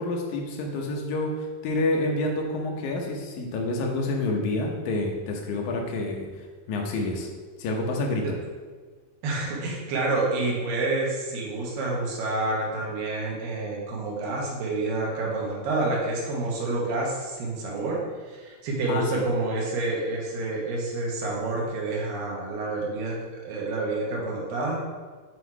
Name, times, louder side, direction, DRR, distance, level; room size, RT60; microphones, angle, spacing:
voice 1, 0.0-6.3 6.7-7.3 7.6-8.3 18.9-19.2, left 2 dB, 70° left, 0 dB, 2.0 m, -28 dB
voice 2, 9.2-24.8, right 2 dB, 80° right, -3 dB, 2.9 m, -28 dB
7.8 x 3.0 x 4.6 m, 1.5 s
omnidirectional pair, 4.0 m